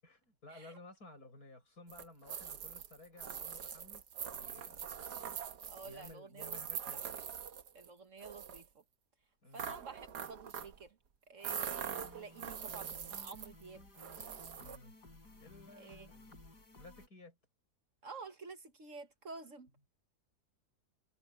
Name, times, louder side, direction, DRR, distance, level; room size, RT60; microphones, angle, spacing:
voice 1, 0.0-4.9 5.8-7.1 9.4-9.8 14.5-15.0 15.4-16.4 16.8-17.4, left 2 dB, 65° left, 8.6 m, -56 dB
sound 1, 1.9-7.9 8.2-8.7 9.6-10.8 11.4-13.6 14.0-14.8, right 8 dB, 80° right, 1.9 m, -43 dB
voice 2, 5.7-6.6 7.0-7.1 7.7-8.8 9.5-11.0 11.3-13.9 15.8-16.1 18.0-19.7, right 4 dB, 50° right, 1.6 m, -50 dB
sound 2, 11.5-17.1, left 2 dB, 85° left, 5.7 m, -57 dB
omnidirectional pair, 1.7 m